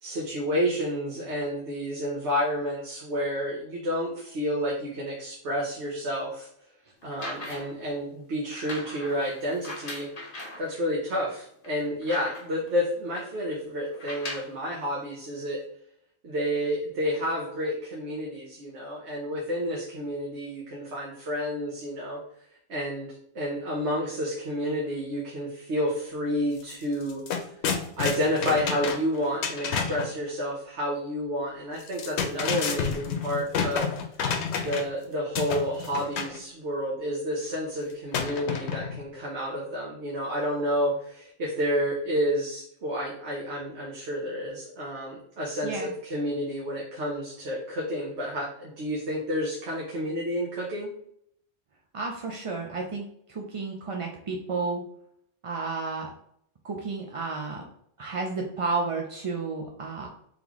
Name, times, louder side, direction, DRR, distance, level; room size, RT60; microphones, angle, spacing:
voice 1, 0.0-6.5 7.0-10.1 10.6-15.6 16.2-22.2 22.7-27.5 27.7-34.0 34.6-50.9, equal, 80° right, -3 dB, 1.2 m, -30 dB
sound 1, 7.0-7.8 8.5-10.7 11.2-11.3 11.6-12.7 13.9-14.6 15.5-15.6, left 2 dB, 40° left, 0.8 m, -40 dB
sound 2, 26.6-26.7 27.0-30.1 31.8-35.0 35.3-36.4 38.1-39.0, left 6 dB, 75° left, 0.9 m, -30 dB
voice 2, 51.9-54.8 55.4-56.1 56.6-57.6 58.0-60.1, right 4 dB, 50° right, 1 dB, 0.4 m, -32 dB
3.8 x 3.4 x 2.9 m, 0.68 s
omnidirectional pair, 1.1 m